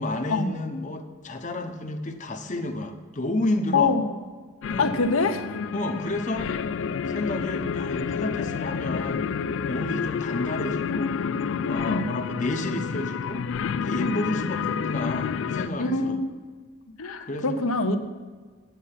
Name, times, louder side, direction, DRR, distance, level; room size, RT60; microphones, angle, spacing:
voice 1, 0.0-4.0 4.7-5.0 5.7-6.5 7.1-9.2 9.7-11.1 11.6-13.4 13.8-16.2 17.3-17.6, left 2 dB, 35° left, 5 dB, 0.7 m, -31 dB
voice 2, 3.7-4.1 4.8-5.4 11.9-12.1 14.0-14.2 15.8-16.3 17.0-18.0, left 3 dB, 90° left, 7 dB, 0.8 m, -24 dB
sound 1, 4.6-15.7, left 6 dB, 65° left, 0.3 m, -29 dB
8.8 x 8.3 x 5.6 m, 1.4 s
head